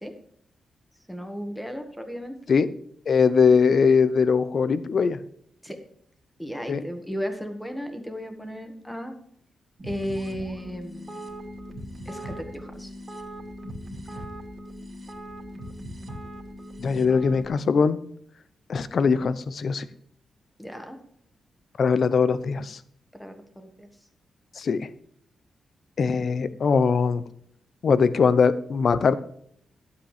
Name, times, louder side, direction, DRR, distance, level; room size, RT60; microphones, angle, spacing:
voice 1, 1.1-2.4 5.6-5.8 6.4-9.1 9.8-11.2 12.1-12.9 20.6-21.0 23.1-23.9, equal, 5° left, 6 dB, 1.7 m, -35 dB
voice 2, 3.1-5.2 6.7-6.8 16.8-18.0 18.7-19.9 21.8-22.8 24.6-24.9 26.0-27.2 27.8-29.2, left 5 dB, 55° left, 15 dB, 0.8 m, -21 dB
sound 1, 9.8-17.5, equal, 30° right, 2.3 m, -39 dB
11.5 x 8.6 x 5.0 m, 0.66 s
cardioid pair, 110°, 0 cm